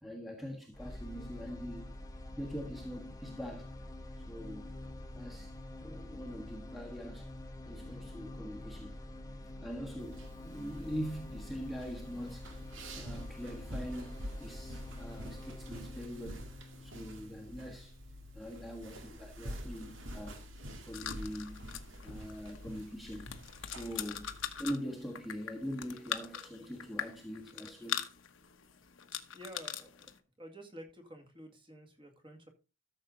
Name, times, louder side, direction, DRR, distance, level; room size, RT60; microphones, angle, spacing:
voice 1, 0.0-1.9 2.3-3.7 4.3-4.7 5.1-7.3 7.6-9.0 9.6-12.5 12.9-18.0 18.3-20.4 20.8-21.7 22.0-23.3 23.6-28.0, equal, ahead, 1.4 m, -43 dB
sound 1, 0.7-18.8, left 1 dB, 15° left, 1.1 m, -47 dB
sound 2, 10.0-24.7, equal, 65° right, 2.1 m, -47 dB
sound 3, 20.9-30.2, left 9 dB, 75° left, 1.1 m, -42 dB
voice 2, 29.3-32.5, equal, 25° right, 2.2 m, -51 dB
13.5 x 6.7 x 3.9 m
head